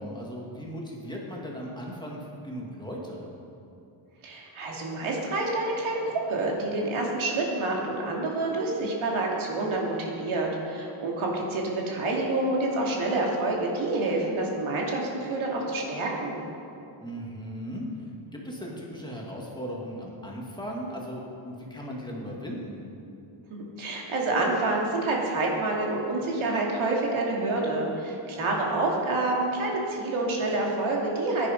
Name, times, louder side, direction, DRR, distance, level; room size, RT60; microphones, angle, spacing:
voice 1, 0.0-3.3 17.0-17.9 18.3-22.8, equal, 10° left, -3 dB, 2.3 m, -37 dB
voice 2, 4.2-16.4 23.5-31.5, right 2 dB, 75° right, -2 dB, 2.6 m, -28 dB
15.5 x 10.0 x 5.3 m, 2.7 s
cardioid pair, 125°, 49 cm